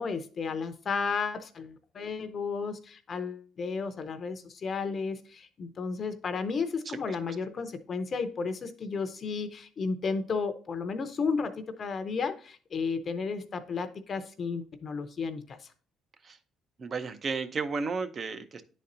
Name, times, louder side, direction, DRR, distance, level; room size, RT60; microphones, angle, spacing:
voice 1, 0.0-15.7, left 5 dB, 40° left, 9 dB, 0.6 m, -33 dB
voice 2, 16.8-18.6, right 4 dB, 40° right, 11 dB, 0.7 m, -33 dB
10.0 x 4.1 x 2.6 m, 0.40 s
cardioid pair, 105°, 0 cm